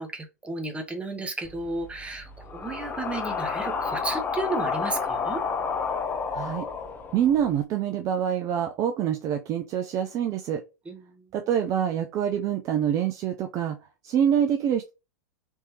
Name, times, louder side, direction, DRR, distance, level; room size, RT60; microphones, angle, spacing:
voice 1, 0.0-5.4 10.8-11.3, right 2 dB, 10° right, 1.0 m, -33 dB
sound 1, 1.4-7.6, left 5 dB, 20° left, 0.5 m, -31 dB
voice 2, 6.3-6.7 7.1-10.6 11.3-13.8 14.0-14.9, right 9 dB, 35° right, 0.4 m, -26 dB
3.6 x 2.9 x 2.8 m
hypercardioid pair, 95°, 10 cm